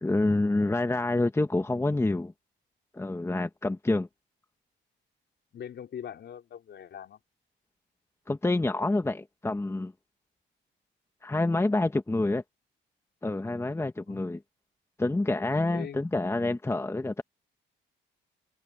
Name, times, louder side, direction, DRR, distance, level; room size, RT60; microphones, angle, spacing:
voice 1, 0.0-2.3 2.9-4.1 8.3-9.9 11.2-12.4 13.2-14.4 15.0-17.2, left 2 dB, 15° left, 1.3 m, -27 dB
voice 2, 5.5-7.2 14.1-14.3 15.7-16.1, left 9 dB, 60° left, 4.7 m, -42 dB
cardioid pair, 90°, 20 cm